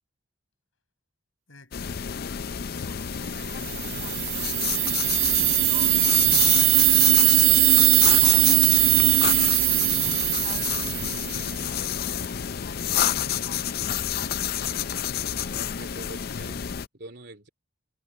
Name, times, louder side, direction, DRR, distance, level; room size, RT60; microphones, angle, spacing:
voice 1, 1.5-4.1 6.3-6.8 8.1-11.0 11.3-12.4 12.7-13.7, left 2 dB, 75° left, 6.9 m, -45 dB
sound 1, 1.7-16.9, left 9 dB, 50° left, 0.4 m, -29 dB
sound 2, 3.6-11.5, right 17 dB, 80° right, 0.5 m, -20 dB
voice 2, 15.3-17.5, right 2 dB, 55° right, 3.4 m, -45 dB
head